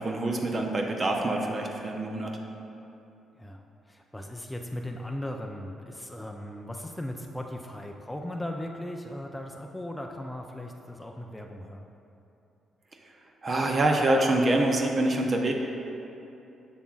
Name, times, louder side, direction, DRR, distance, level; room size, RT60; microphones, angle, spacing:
voice 1, 0.0-2.3 13.4-15.5, right 2 dB, 45° right, 2 dB, 0.6 m, -25 dB
voice 2, 3.4-11.9, left 1 dB, 10° left, 2 dB, 0.4 m, -38 dB
6.8 x 6.1 x 2.4 m, 2.9 s
supercardioid pair, 60°, 0 cm